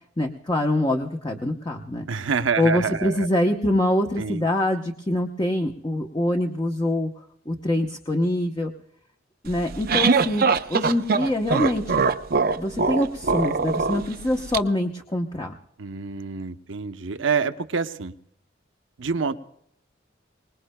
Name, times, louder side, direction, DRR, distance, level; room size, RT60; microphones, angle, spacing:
voice 1, 0.2-2.0 2.6-7.1 7.5-8.7 9.4-12.0 12.5-15.5, left 1 dB, 20° left, 3 dB, 0.8 m, -24 dB
voice 2, 2.1-3.3 4.2-4.4 15.8-18.1 19.0-19.3, right 5 dB, 80° right, 9 dB, 0.8 m, -27 dB
sound 1, 9.5-14.6, right 4 dB, 50° right, 0.5 m, -22 dB
25.0 x 20.0 x 2.2 m, 0.73 s
head